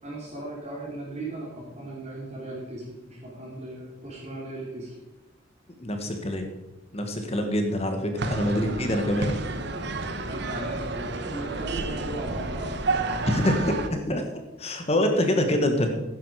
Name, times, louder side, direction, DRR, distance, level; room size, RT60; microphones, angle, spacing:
voice 1, 0.0-5.0 10.3-13.0, right 2 dB, 35° right, -5 dB, 3.2 m, -37 dB
voice 2, 5.8-6.5 6.9-9.3 13.3-13.6 13.9-14.2 14.6-15.9, left 1 dB, 30° left, 5 dB, 1.6 m, -25 dB
sound 1, 8.2-13.9, right 3 dB, 60° right, 1.0 m, -30 dB
11.5 x 10.0 x 4.9 m, 0.99 s
head